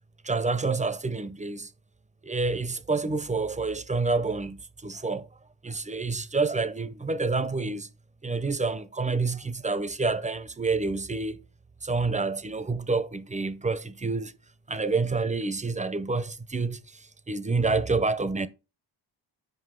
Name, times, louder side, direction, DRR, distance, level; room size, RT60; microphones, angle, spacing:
voice 1, 0.2-1.7 2.2-5.3 5.6-7.9 8.2-11.4 11.8-14.3 14.7-18.5, right 3 dB, 15° right, 0.5 m, -28 dB
7.8 x 5.4 x 3.7 m
cardioid pair, 115°, 45 cm